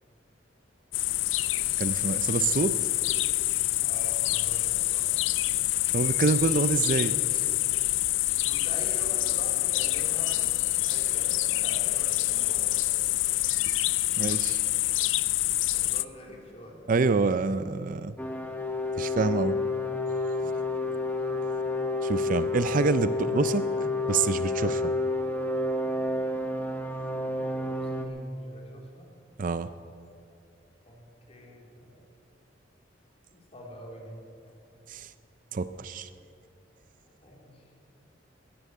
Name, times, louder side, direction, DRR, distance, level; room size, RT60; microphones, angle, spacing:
sound 1, 0.9-16.1, left 17 dB, 85° left, 0.4 m, -26 dB
voice 1, 1.8-2.8 5.9-7.5 13.7-13.9 14.2-14.6 16.9-18.1 19.0-19.6 22.0-23.7 24.1-24.9 29.4-29.7 34.9-35.1 35.5-36.1, right 4 dB, 45° right, 13 dB, 0.4 m, -27 dB
voice 2, 3.6-5.2 8.5-10.4 10.8-12.8 15.7-16.9 20.4-21.0 27.5-29.1 30.8-32.0 33.3-34.6 37.2-37.7, equal, 35° left, -1 dB, 3.5 m, -45 dB
sound 2, 18.2-28.1, left 2 dB, 10° left, 1.2 m, -29 dB
14.0 x 11.0 x 9.4 m, 2.5 s
head